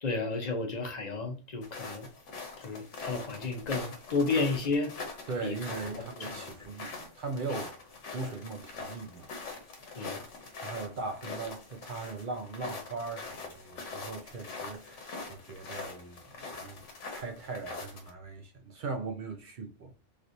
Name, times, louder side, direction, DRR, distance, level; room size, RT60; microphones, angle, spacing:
voice 1, 0.0-2.1 2.6-4.9 5.4-5.6 5.9-6.3 9.9-10.2, left 3 dB, 40° left, 0.7 m, -32 dB
sound 1, 1.6-18.1, left 3 dB, 80° left, 1.1 m, -43 dB
voice 2, 5.3-9.6 10.6-16.8 17.1-19.9, right 3 dB, 60° right, 0.5 m, -39 dB
3.2 x 2.8 x 2.5 m
omnidirectional pair, 1.2 m